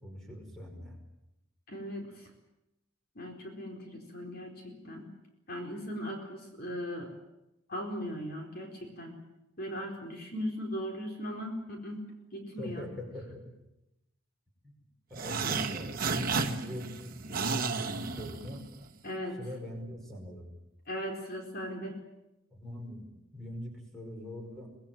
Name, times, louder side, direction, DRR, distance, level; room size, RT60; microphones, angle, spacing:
voice 1, 0.0-1.0 12.6-13.4 14.6-14.7 15.1-18.6 19.4-20.5 22.5-24.7, left 1 dB, ahead, 1 dB, 5.2 m, -41 dB
voice 2, 1.7-2.3 3.2-5.1 5.5-7.1 7.7-9.1 9.6-12.0 12.3-12.9 19.0-19.4 20.9-22.0, equal, 45° left, 2 dB, 4.4 m, -38 dB
sound 1, 15.1-18.9, right 5 dB, 40° right, 1.6 m, -33 dB
25.0 x 19.5 x 9.1 m, 0.93 s
head